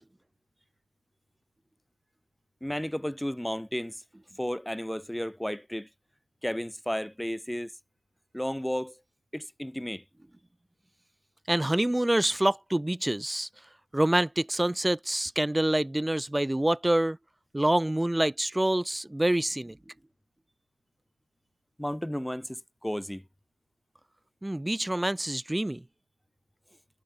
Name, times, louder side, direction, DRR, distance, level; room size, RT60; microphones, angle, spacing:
voice 1, 2.6-4.0 4.4-5.9 6.4-7.7 8.3-8.9 9.3-10.0 21.8-23.2, equal, 5° left, 1.1 m, -33 dB
voice 2, 11.5-13.5 13.9-17.2 17.5-19.8 24.4-25.8, right 1 dB, 10° right, 0.8 m, -26 dB
cardioid pair, 65°, 0 cm